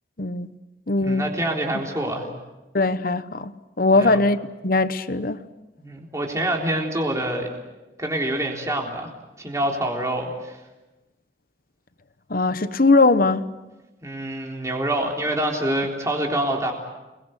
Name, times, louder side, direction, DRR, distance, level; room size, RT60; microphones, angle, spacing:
voice 1, 0.2-0.5 0.9-1.2 2.7-4.4 4.6-5.4 12.3-13.5, left 3 dB, 50° left, 1.0 m, -20 dB
voice 2, 1.0-2.3 3.9-4.2 5.8-7.5 8.0-9.1 9.4-10.6 14.0-16.7, right 1 dB, 15° right, 3.7 m, -26 dB
30.0 x 21.5 x 8.1 m
head